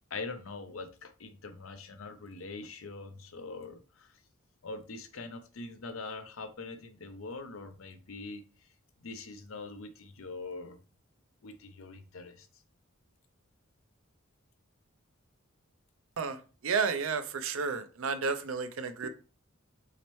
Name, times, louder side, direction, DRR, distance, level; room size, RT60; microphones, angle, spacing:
voice 1, 0.1-4.1 4.6-8.4 9.0-10.8 11.4-12.5, left 3 dB, 80° left, 0.6 m, -43 dB
voice 2, 16.2-19.1, right 5 dB, 85° right, 0.5 m, -32 dB
4.1 x 2.8 x 3.1 m
head